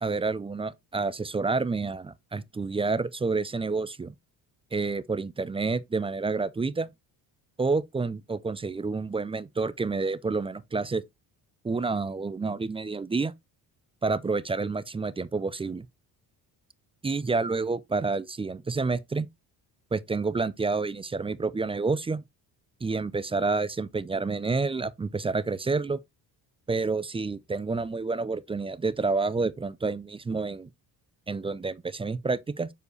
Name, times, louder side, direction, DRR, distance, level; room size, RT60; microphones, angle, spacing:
voice 1, 0.0-4.1 4.7-6.9 7.6-11.0 11.6-13.3 14.0-15.9 17.0-19.3 19.9-22.2 22.8-26.0 26.7-30.7 31.3-32.7, right 4 dB, 15° right, 0.3 m, -29 dB
6.9 x 4.7 x 3.1 m
cardioid pair, 95°, 43 cm